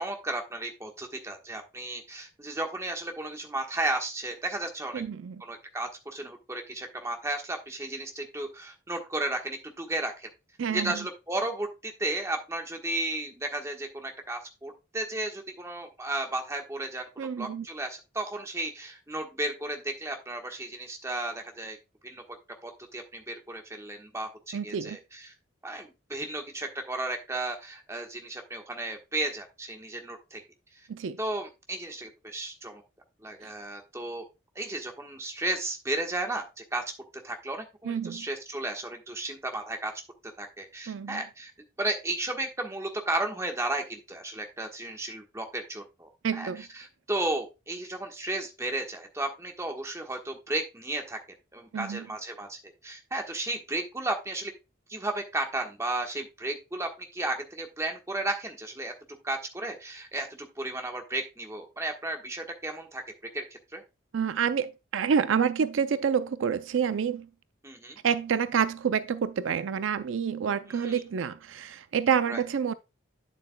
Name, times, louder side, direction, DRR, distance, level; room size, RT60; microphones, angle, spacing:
voice 1, 0.0-5.0 5.4-10.3 10.7-21.8 22.0-22.2 22.6-25.3 25.6-30.4 31.2-32.8 33.2-34.2 34.5-36.8 37.2-39.9 40.4-41.5 41.8-46.5 46.7-51.2 51.5-54.5 54.9-58.9 59.2-63.0 63.3-63.8 67.6-68.0 70.8-71.0 72.3-72.4, right 2 dB, 15° right, 1.2 m, -34 dB
voice 2, 4.9-5.4 10.6-11.1 17.2-17.7 24.5-25.0 30.9-31.2 33.4-33.5 37.8-38.3 40.9-41.2 46.2-46.7 51.7-52.1 64.1-67.3 68.0-72.7, right 7 dB, 75° right, 0.4 m, -28 dB
8.8 x 7.6 x 2.2 m
head